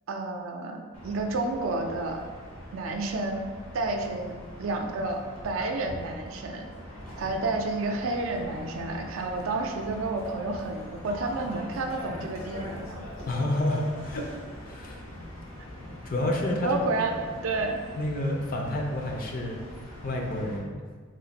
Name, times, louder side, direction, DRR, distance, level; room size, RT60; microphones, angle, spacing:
voice 1, 0.1-2.2 2.7-3.5 3.7-6.7 7.2-13.1 16.6-17.8, right 2 dB, 85° right, 3 dB, 0.4 m, -30 dB
sound 1, 0.9-20.6, left 1 dB, 75° left, 0.9 m, -42 dB
voice 2, 13.3-14.4 14.7-15.0 16.0-16.8 18.0-19.6 20.0-20.8, left 1 dB, 45° left, 1 dB, 0.5 m, -29 dB
3.0 x 2.5 x 4.0 m, 1.5 s
head